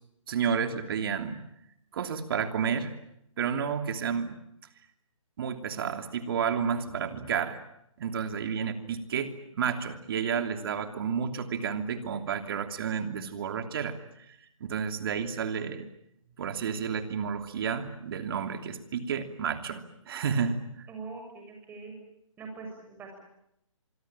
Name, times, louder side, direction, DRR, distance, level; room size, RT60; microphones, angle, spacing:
voice 1, 0.3-1.4 1.9-2.9 3.4-4.4 5.4-7.6 8.0-14.0 14.3-15.9 16.4-20.9, right 7 dB, 45° right, 8 dB, 3.0 m, -31 dB
voice 2, 20.9-22.0 22.4-23.2, right 4 dB, 10° right, 3 dB, 6.9 m, -42 dB
25.5 x 23.5 x 8.9 m, 0.78 s
hypercardioid pair, 150°, 17 cm